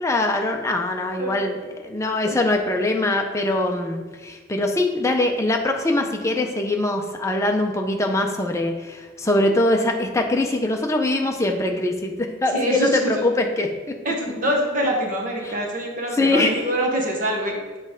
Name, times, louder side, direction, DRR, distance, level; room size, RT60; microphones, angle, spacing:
voice 1, 0.0-13.7 15.4-15.5 16.1-16.6, left 2 dB, 15° left, 2 dB, 0.5 m, -22 dB
voice 2, 12.5-13.1 14.0-17.6, right 1 dB, 40° right, -1 dB, 1.1 m, -24 dB
7.7 x 3.2 x 5.0 m, 1.4 s
head